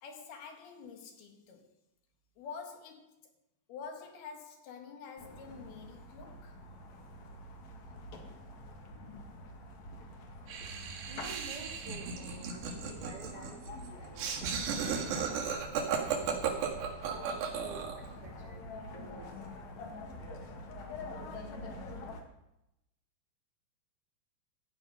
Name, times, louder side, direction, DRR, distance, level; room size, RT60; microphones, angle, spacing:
voice 1, 0.0-1.7 2.4-3.3 3.7-6.6, left 5 dB, 70° left, 3.5 m, -47 dB
sound 1, 5.2-22.2, left 2 dB, 55° left, 2.5 m, -46 dB
voice 2, 10.2-19.8, right 3 dB, 65° right, 1.4 m, -52 dB
Laughter, 10.5-18.1, right 7 dB, 90° right, 4.1 m, -35 dB
15.0 x 10.0 x 5.5 m
omnidirectional pair, 4.7 m